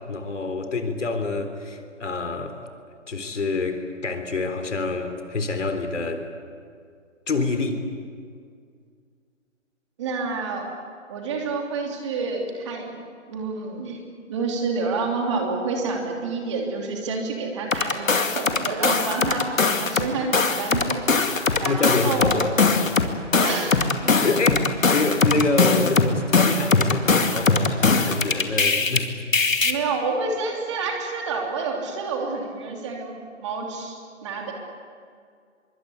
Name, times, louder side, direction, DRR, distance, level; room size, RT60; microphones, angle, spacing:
voice 1, 0.0-2.6 3.1-6.3 7.3-7.8 21.5-22.9 24.0-29.2, left 3 dB, 65° left, 6 dB, 3.8 m, -27 dB
voice 2, 10.0-10.7 11.1-13.0 13.3-14.0 14.3-19.5 19.8-20.3 20.6-21.0 21.6-22.4 23.4-23.8 29.6-34.5, right 4 dB, 25° right, 1 dB, 2.9 m, -28 dB
sound 1, 17.7-20.1 20.3-29.0 29.3-29.7, left 4 dB, 85° left, 2.5 m, -20 dB
24.5 x 23.5 x 8.5 m, 2.2 s
hypercardioid pair, 160°, 39 cm